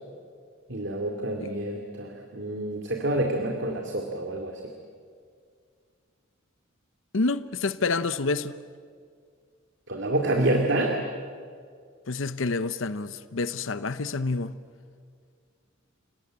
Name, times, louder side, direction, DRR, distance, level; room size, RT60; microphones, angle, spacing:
voice 1, 0.7-4.6 9.9-11.0, right 1 dB, 60° right, 2.4 m, -27 dB
voice 2, 7.1-8.5 12.1-14.6, left 3 dB, 70° left, 0.8 m, -28 dB
30.0 x 18.5 x 8.8 m
head